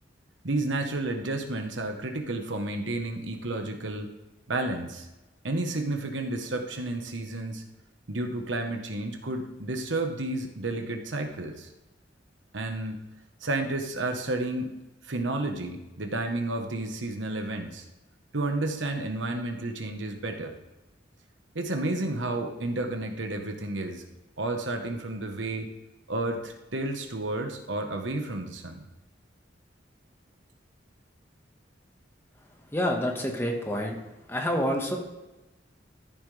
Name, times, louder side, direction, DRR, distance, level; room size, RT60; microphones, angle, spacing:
voice 1, 0.4-4.1 4.5-5.1 5.4-7.6 8.1-11.7 12.5-13.0 13.4-14.7 15.0-17.8 18.3-20.5 21.5-24.0 24.4-25.7 26.1-28.9, right 2 dB, 85° right, 5 dB, 1.2 m, -31 dB
voice 2, 32.7-34.0 34.3-35.0, equal, 15° left, 1 dB, 1.5 m, -28 dB
14.0 x 10.5 x 3.4 m, 1.0 s
head